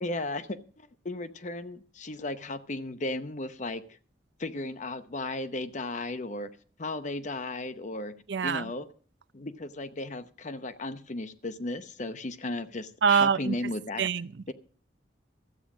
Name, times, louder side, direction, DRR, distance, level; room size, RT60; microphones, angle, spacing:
voice 1, 0.0-3.8 4.4-6.5 6.8-8.2 8.4-8.9 9.3-14.0 14.5-14.6, left 2 dB, 40° left, 0.8 m, -35 dB
voice 2, 8.3-8.7 13.0-13.6 14.0-14.3, right 6 dB, 75° right, 0.5 m, -24 dB
13.5 x 8.6 x 6.1 m
head